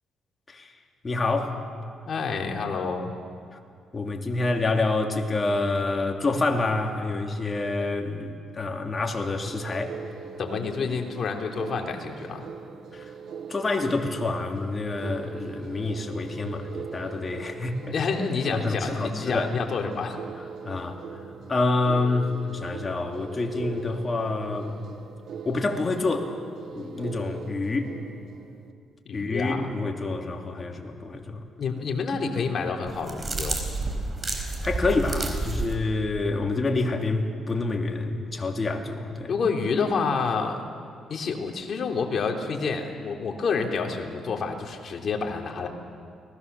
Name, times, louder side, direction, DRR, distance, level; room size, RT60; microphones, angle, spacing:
voice 1, 1.0-1.5 3.9-10.0 12.9-13.0 13.5-17.9 18.5-19.5 20.6-21.0 21.5-24.8 25.4-26.3 26.7-27.9 29.1-31.4 34.6-39.3, left 3 dB, 30° left, 2 dB, 3.0 m, -27 dB
voice 2, 2.1-3.1 10.4-12.4 17.9-20.2 29.0-29.7 31.6-33.6 39.3-40.6 41.1-45.7, left 5 dB, 55° left, 2 dB, 3.3 m, -28 dB
sound 1, 9.3-28.7, right 6 dB, 65° right, 1.6 m, -41 dB
sound 2, 32.9-35.8, right 2 dB, 30° right, 4.3 m, -30 dB
30.0 x 20.0 x 7.0 m, 2.3 s
cardioid pair, 90°, 0 cm